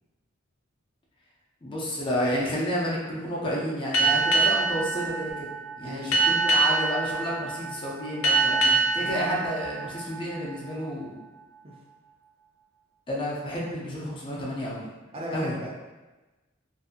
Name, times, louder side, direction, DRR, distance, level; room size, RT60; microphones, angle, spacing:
voice 1, 1.6-5.5 5.8-11.2 13.1-14.9 15.3-15.5, equal, 25° left, -5 dB, 0.5 m, -30 dB
Boat Water vehicle, 3.9-11.0, right 3 dB, 80° left, 0.4 m, -25 dB
voice 2, 5.8-6.3 9.0-9.4 11.6-11.7 15.1-15.7, equal, 30° right, -4 dB, 0.5 m, -37 dB
2.6 x 2.6 x 2.4 m, 1.1 s
head